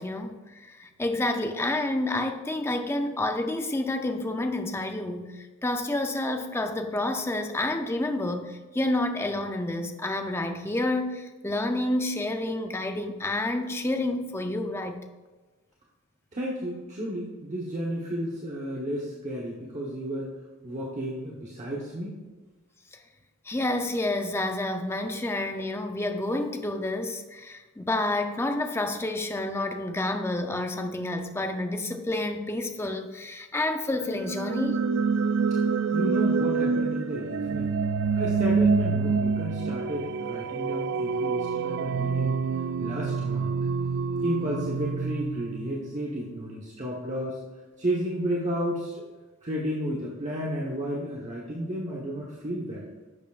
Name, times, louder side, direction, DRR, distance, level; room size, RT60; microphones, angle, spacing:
voice 1, 0.0-15.0 23.5-34.8, left 2 dB, 10° left, 6 dB, 0.5 m, -29 dB
voice 2, 16.3-20.3 20.6-22.2 35.9-37.7 38.1-42.4 42.8-43.6 44.2-47.4 47.8-49.0 49.4-52.8, equal, 35° right, -5 dB, 1.1 m, -32 dB
sound 1, 34.1-46.0, right 5 dB, 55° right, 0.3 m, -27 dB
11.0 x 7.1 x 2.4 m, 1.3 s
head